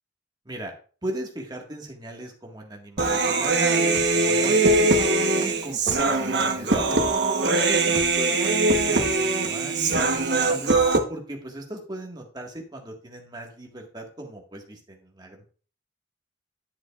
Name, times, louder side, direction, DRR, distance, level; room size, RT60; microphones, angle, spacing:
voice 1, 1.0-5.1 5.4-7.0 7.4-10.8 11.1-15.5, right 1 dB, 25° right, 1 dB, 1.6 m, -37 dB
Human voice, 3.0-11.0, right 3 dB, 65° right, 1.1 m, -22 dB
10.0 x 7.8 x 2.4 m, 0.40 s
head